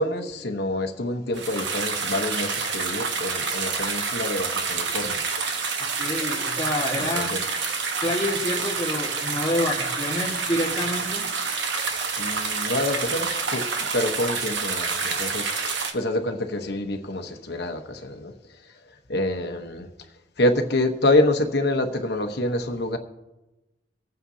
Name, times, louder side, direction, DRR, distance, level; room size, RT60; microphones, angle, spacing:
voice 1, 0.0-5.2 6.9-7.4 12.2-13.7 13.9-15.5 15.9-18.3 18.6-18.7 19.1-19.9 20.4-23.0, left 1 dB, 60° left, 5 dB, 1.1 m, -26 dB
sound 1, 1.3-15.9, right 5 dB, 75° right, 1.2 m, -28 dB
voice 2, 5.8-7.3 8.0-11.2, left 1 dB, 20° left, -6 dB, 1.6 m, -28 dB
27.0 x 9.1 x 2.8 m, 1.0 s
head